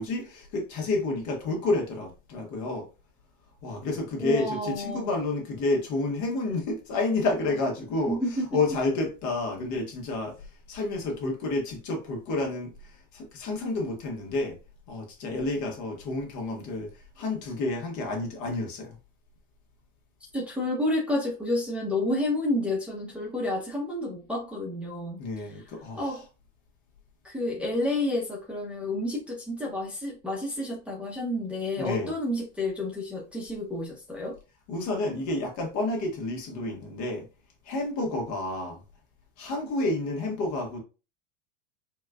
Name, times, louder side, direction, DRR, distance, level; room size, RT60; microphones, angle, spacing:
voice 1, 0.0-2.9 3.6-8.2 8.5-10.4 10.7-14.6 14.9-19.0 25.2-26.2 31.8-32.1 34.7-37.3 37.6-38.8 39.4-40.8, left 2 dB, 50° left, 1.3 m, -30 dB
voice 2, 4.2-5.1 8.1-8.4 20.3-25.2 26.0-26.2 27.2-34.3, left 1 dB, 5° right, 0.8 m, -30 dB
4.4 x 2.3 x 2.3 m
supercardioid pair, 125°, 38 cm